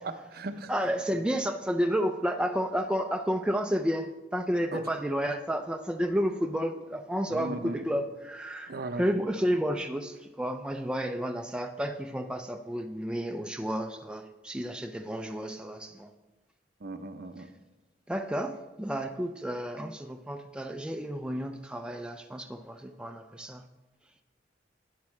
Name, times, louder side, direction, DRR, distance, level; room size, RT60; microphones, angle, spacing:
voice 1, 0.0-0.7 4.7-4.8 7.3-7.8 8.7-9.1 16.8-17.5, right 2 dB, 55° right, 9 dB, 0.7 m, -37 dB
voice 2, 0.7-16.1 18.1-23.6, equal, 5° right, 5 dB, 0.4 m, -31 dB
11.5 x 9.3 x 3.2 m, 1.2 s
head